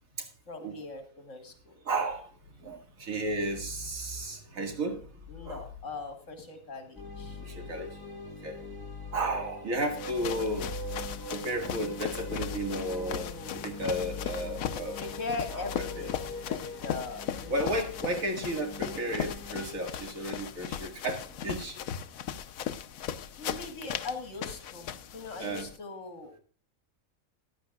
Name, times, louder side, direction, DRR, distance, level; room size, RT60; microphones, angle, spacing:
voice 1, 0.5-1.8 5.3-7.4 13.1-13.7 15.0-17.9 23.4-26.4, left 3 dB, 65° left, 6 dB, 2.0 m, -40 dB
voice 2, 1.9-2.3 2.6-5.1 5.4-5.6 7.3-8.0 8.4-8.6 9.1-10.7 11.3-13.3 13.6-15.0 15.5-15.7 16.0-16.1 17.5-21.8 25.4-25.7, right 1 dB, 75° right, 3 dB, 2.3 m, -33 dB
sound 1, 7.0-19.8, left 2 dB, 15° left, 1.3 m, -41 dB
sound 2, 9.7-25.8, left 9 dB, 80° left, 1.1 m, -38 dB
14.5 x 10.5 x 2.3 m, 0.40 s
omnidirectional pair, 1.5 m